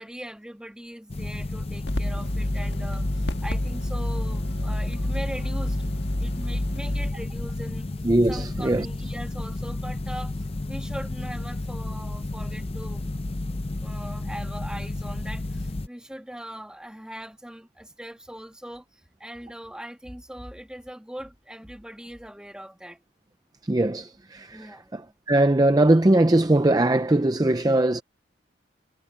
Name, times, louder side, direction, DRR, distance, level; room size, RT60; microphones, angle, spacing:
voice 1, 0.0-5.9 6.1-7.9 8.3-10.3 10.6-13.0 13.8-18.9 19.2-23.0 24.5-24.9, equal, 5° right, 1.9 m, -40 dB
sound 1, 1.1-15.9, left 2 dB, 30° left, 0.6 m, -32 dB
sound 2, 1.9-7.1, left 1 dB, 60° left, 1.7 m, -29 dB
voice 2, 8.0-8.9 23.7-24.7 24.9-25.0 25.3-28.0, right 1 dB, 20° right, 0.5 m, -20 dB
head